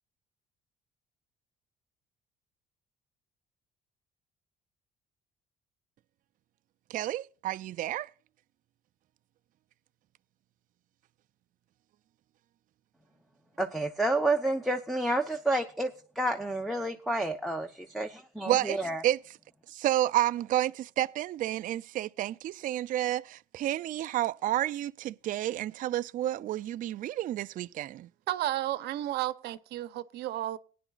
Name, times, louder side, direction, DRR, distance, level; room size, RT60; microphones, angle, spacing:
voice 1, 6.9-8.1 18.5-19.2 19.7-28.1, right 13 dB, 55° right, 0.4 m, -30 dB
voice 2, 13.6-15.9 16.2-19.0, right 1 dB, ahead, 0.9 m, -29 dB
voice 3, 28.3-30.6, right 14 dB, 80° right, 0.8 m, -32 dB
19.0 x 10.0 x 2.4 m
cardioid pair, 110°, 17 cm